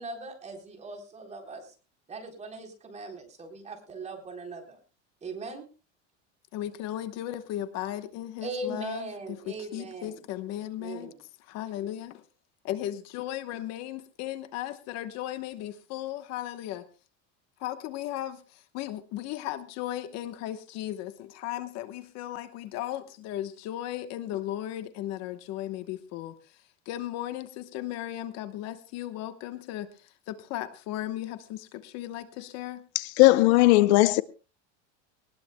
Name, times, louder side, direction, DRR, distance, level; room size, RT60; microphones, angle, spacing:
voice 1, 0.0-1.7 2.1-4.8 5.2-5.6 8.4-10.2 10.8-11.2, right 2 dB, 20° right, 3.9 m, -39 dB
voice 2, 6.5-11.1 11.5-12.2 12.6-16.9 17.6-26.3 26.9-32.8, left 13 dB, 50° left, 1.1 m, -36 dB
voice 3, 33.0-34.2, left 18 dB, 75° left, 0.7 m, -18 dB
20.0 x 19.5 x 2.2 m
supercardioid pair, 150°, 33 cm